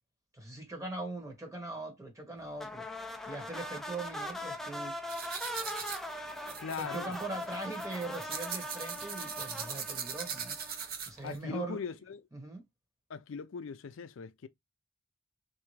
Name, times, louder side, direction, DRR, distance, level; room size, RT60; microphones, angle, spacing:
voice 1, 0.3-2.9 3.3-5.0 6.8-10.5 11.0-11.8 12.3-12.6, right 2 dB, 15° right, 1.2 m, -41 dB
sound 1, 2.6-11.0, equal, ahead, 0.4 m, -41 dB
sound 2, 5.1-11.4, right 6 dB, 50° right, 0.6 m, -40 dB
voice 2, 6.6-7.2 11.2-12.2 13.1-14.5, left 6 dB, 70° left, 0.4 m, -40 dB
3.4 x 2.7 x 3.1 m
head